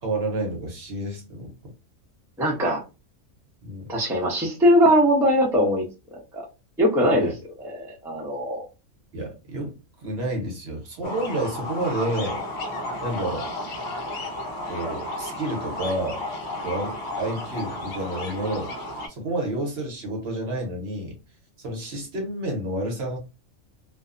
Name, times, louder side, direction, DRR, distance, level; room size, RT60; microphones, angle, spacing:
voice 1, 0.0-1.5 3.6-3.9 7.2-7.3 9.1-12.4 13.0-13.5 14.7-16.2 16.6-18.7 19.1-21.2 21.6-23.2, right 1 dB, 55° right, 1 dB, 1.0 m, -30 dB
voice 2, 2.4-2.8 3.9-5.9 6.3-6.4 6.8-7.3 7.6-8.7, equal, 5° right, -2 dB, 0.5 m, -21 dB
sound 1, 11.0-19.1, left 1 dB, 60° left, 0.9 m, -33 dB
2.7 x 2.2 x 2.5 m, 0.28 s
omnidirectional pair, 1.4 m